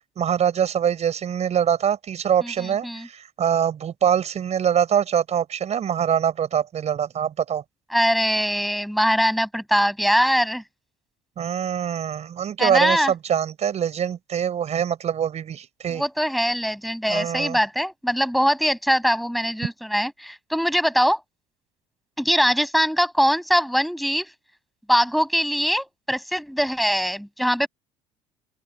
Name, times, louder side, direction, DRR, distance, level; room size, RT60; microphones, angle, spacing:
voice 1, 0.2-7.6 11.4-16.0 17.1-17.6, right 8 dB, 50° right, 6.4 m, -24 dB
voice 2, 2.4-3.1 7.9-10.6 12.6-13.1 15.9-21.2 22.2-24.3 24.9-27.7, equal, ahead, 6.5 m, -22 dB
open air
hypercardioid pair, 70°, 15 cm